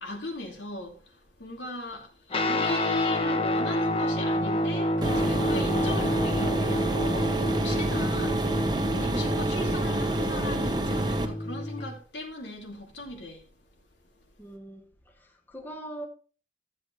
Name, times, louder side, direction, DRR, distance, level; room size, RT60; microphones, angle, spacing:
voice 1, 0.0-13.5, left 2 dB, 85° left, 2.5 m, -38 dB
Guitar, 2.3-11.9, left 1 dB, 30° left, 0.9 m, -29 dB
sound 1, 5.0-11.3, right 2 dB, 25° right, 0.9 m, -28 dB
voice 2, 14.4-14.8 15.2-16.1, right 1 dB, 10° left, 1.2 m, -41 dB
13.5 x 7.8 x 3.1 m
head